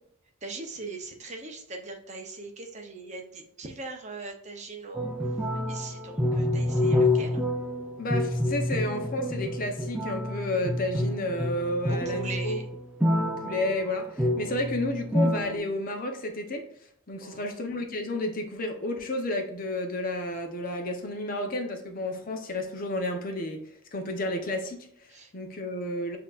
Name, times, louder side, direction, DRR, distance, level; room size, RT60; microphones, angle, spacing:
voice 1, 0.4-5.1 5.7-7.4 11.9-12.7 17.2-17.6 25.1-25.3, right 3 dB, 35° right, 3 dB, 0.7 m, -40 dB
sound 1, 4.9-15.6, left 1 dB, 5° right, 0.4 m, -28 dB
voice 2, 8.0-12.6 13.0-16.7 17.1-23.6 23.9-25.1 25.3-26.2, left 1 dB, 40° left, 4 dB, 0.7 m, -31 dB
7.4 x 2.8 x 2.4 m, 0.73 s
head